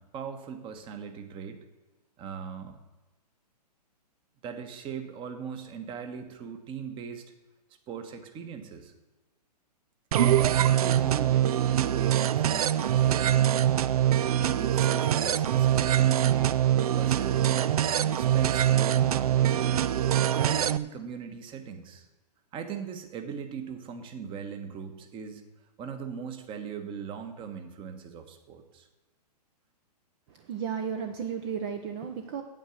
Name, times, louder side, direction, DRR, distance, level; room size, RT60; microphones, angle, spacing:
voice 1, 0.0-1.6 2.2-2.8 4.4-7.2 7.9-8.9 10.4-13.9 14.5-17.8 18.0-22.1 22.5-25.4 25.8-28.9, right 7 dB, 25° right, 7 dB, 1.3 m, -39 dB
sound 1, 10.1-20.8, right 11 dB, 60° right, 0.5 m, -24 dB
voice 2, 30.3-32.4, right 7 dB, 40° right, 6 dB, 0.9 m, -34 dB
9.1 x 8.4 x 6.5 m, 1.1 s
hypercardioid pair, 125°, 21 cm